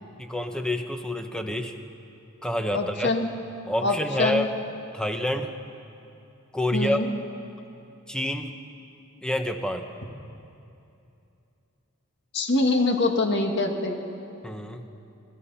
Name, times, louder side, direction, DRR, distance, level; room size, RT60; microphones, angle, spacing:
voice 1, 0.2-1.7 2.4-3.1 3.7-4.5 4.9-5.5 6.5-7.0 8.1-8.5 9.2-9.9 14.4-14.8, left 1 dB, 5° left, 5 dB, 1.2 m, -28 dB
voice 2, 2.7-3.3 3.8-4.5 6.7-7.1 12.3-14.0, left 2 dB, 55° left, 3 dB, 2.2 m, -24 dB
28.0 x 18.5 x 5.8 m, 2.7 s
head